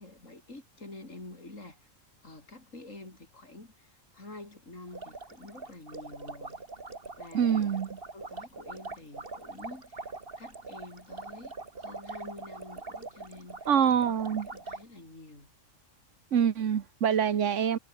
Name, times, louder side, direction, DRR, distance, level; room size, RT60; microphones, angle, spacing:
voice 1, 0.0-1.9 2.2-6.6 7.2-7.8 8.1-15.5, left 2 dB, 75° left, 5.8 m, -48 dB
sound 1, 4.9-14.8, right 3 dB, 45° right, 2.7 m, -43 dB
voice 2, 7.3-7.9 13.7-14.5 16.3-17.8, right 8 dB, 70° right, 1.4 m, -25 dB
omnidirectional pair, 1.3 m